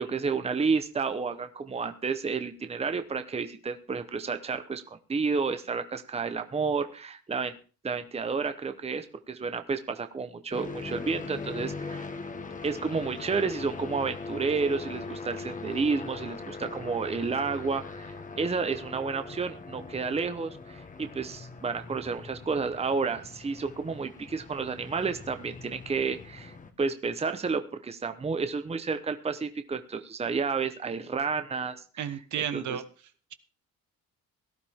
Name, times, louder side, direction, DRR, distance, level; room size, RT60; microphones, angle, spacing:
voice 1, 0.0-7.5 7.8-12.1 12.6-32.2 32.5-32.8, right 4 dB, 20° right, 9 dB, 1.0 m, -31 dB
sound 1, 10.5-26.7, left 4 dB, 25° left, 1.4 m, -41 dB
voice 2, 32.0-32.8, right 9 dB, 60° right, 11 dB, 1.4 m, -32 dB
17.5 x 12.0 x 3.6 m, 0.36 s
cardioid pair, 130°, 34 cm